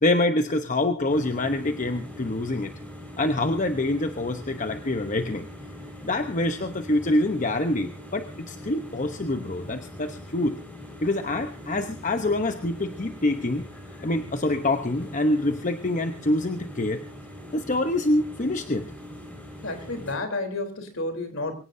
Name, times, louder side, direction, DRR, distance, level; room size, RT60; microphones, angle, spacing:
voice 1, 0.0-2.7 3.2-5.5 6.0-10.6 11.0-13.7 14.0-17.0 17.5-18.9, left 2 dB, 35° left, 7 dB, 0.9 m, -26 dB
sound 1, 1.1-20.2, equal, 10° left, 5.0 m, -42 dB
voice 2, 19.6-21.5, left 2 dB, 65° left, 6 dB, 3.6 m, -31 dB
23.5 x 17.5 x 2.7 m, 0.34 s
head